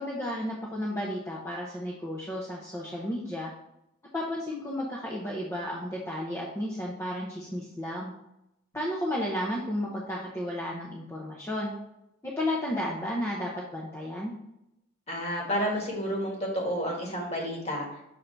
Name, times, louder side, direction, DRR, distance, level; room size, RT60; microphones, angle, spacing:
voice 1, 0.0-3.5 4.1-8.1 8.7-11.7 12.2-14.3, left 1 dB, 15° left, -4 dB, 0.8 m, -33 dB
voice 2, 15.1-18.0, equal, 30° left, -1 dB, 1.7 m, -30 dB
6.6 x 3.7 x 4.5 m, 0.85 s
head